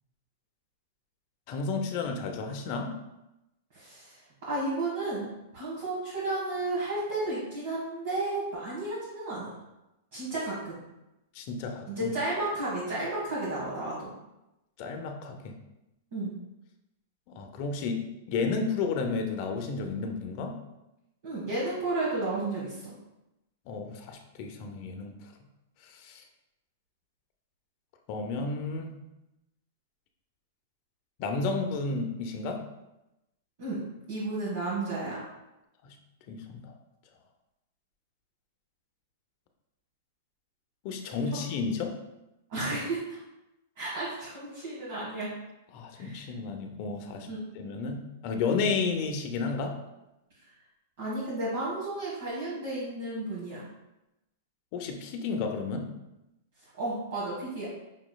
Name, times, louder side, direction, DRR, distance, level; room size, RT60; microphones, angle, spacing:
voice 1, 1.5-2.9 11.3-12.1 14.8-15.5 17.3-18.0 18.3-20.6 23.7-25.1 25.8-26.2 28.1-29.0 31.2-32.6 35.8-35.9 36.3-36.7 40.8-42.0 45.7-47.3 47.5-49.7 54.7-55.9, left 4 dB, 45° left, 3 dB, 0.6 m, -32 dB
voice 2, 3.7-9.5 10.1-10.8 11.9-14.1 16.1-16.3 21.2-22.9 33.6-35.2 42.5-43.2 43.8-45.3 45.9-46.2 47.3-47.4 51.0-53.7 56.8-57.7, right 2 dB, 60° right, -8 dB, 1.4 m, -33 dB
5.7 x 3.0 x 2.3 m, 0.94 s
hypercardioid pair, 140°, 0 cm